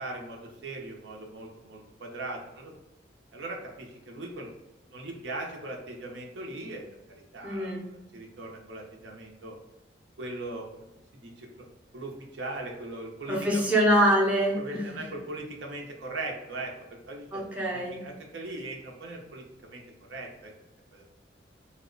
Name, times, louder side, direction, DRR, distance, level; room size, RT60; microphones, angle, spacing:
voice 1, 0.0-2.7 3.3-4.5 4.9-6.8 7.1-9.5 10.2-10.8 11.1-11.5 11.9-13.6 14.6-16.7 17.0-17.4 17.7-19.8 20.1-20.5 20.9-21.0, right 2 dB, 75° right, 0 dB, 0.7 m, -39 dB
voice 2, 7.4-7.8 13.3-14.8 17.3-18.0, equal, 5° right, -4 dB, 0.6 m, -24 dB
2.9 x 2.1 x 3.7 m, 0.98 s
head